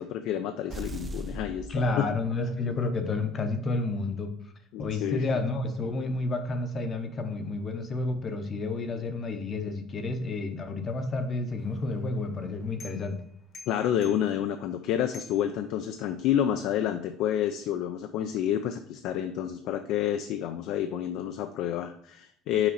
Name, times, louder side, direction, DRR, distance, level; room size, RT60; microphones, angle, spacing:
voice 1, 0.0-2.1 4.7-5.2 13.7-22.7, left 10 dB, 65° left, 8 dB, 0.4 m, -29 dB
sound 1, 0.7-2.6, equal, 20° right, 0.4 m, -39 dB
voice 2, 1.7-4.3 4.8-13.2, left 2 dB, 30° left, 7 dB, 0.7 m, -30 dB
sound 2, 11.6-16.3, left 4 dB, 45° left, 1.0 m, -52 dB
5.9 x 4.2 x 4.0 m, 0.69 s
cardioid pair, 150°, 0 cm